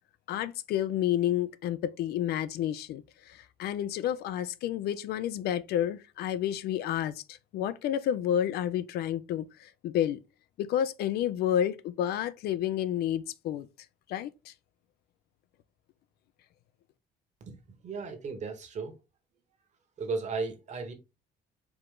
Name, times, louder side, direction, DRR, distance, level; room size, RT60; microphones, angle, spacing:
voice 1, 0.3-10.2 10.6-13.7 14.1-14.5, left 11 dB, 70° left, 0.5 m, -30 dB
voice 2, 17.8-19.0 20.0-20.9, right 4 dB, 45° right, 1.2 m, -35 dB
4.8 x 2.5 x 3.7 m
cardioid pair, 110°, 17 cm